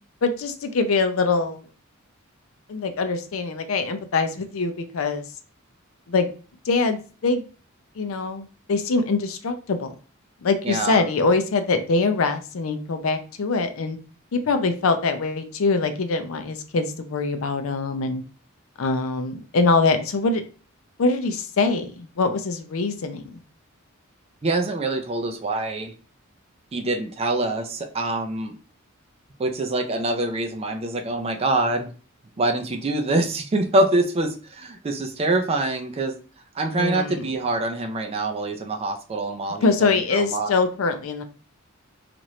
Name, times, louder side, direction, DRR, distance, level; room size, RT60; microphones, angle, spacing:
voice 1, 0.2-1.6 2.7-5.3 6.1-6.3 6.7-7.4 8.0-9.9 10.4-14.0 14.3-18.2 18.8-20.4 21.0-23.4 36.7-37.2 39.6-41.2, left 3 dB, 75° left, 8 dB, 0.5 m, -23 dB
voice 2, 10.6-11.0 24.4-25.9 26.7-28.6 29.4-31.9 32.4-36.2 36.5-40.5, right 2 dB, 30° right, 5 dB, 0.4 m, -25 dB
2.8 x 2.5 x 3.1 m, 0.37 s
head